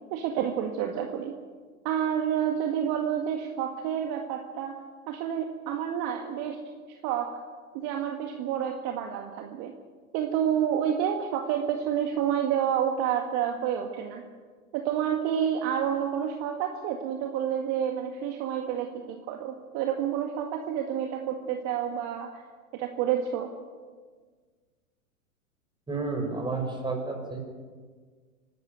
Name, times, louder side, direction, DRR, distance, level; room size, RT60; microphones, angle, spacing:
voice 1, 0.1-1.3 1.8-6.6 6.9-7.4 7.7-9.7 10.1-14.2 14.7-22.4 22.7-23.5, right 9 dB, 40° right, 3 dB, 2.0 m, -29 dB
voice 2, 25.9-27.4, right 3 dB, 10° right, 2 dB, 5.6 m, -31 dB
25.5 x 12.5 x 9.3 m, 1.5 s
figure-of-eight pair, 105°, 43 cm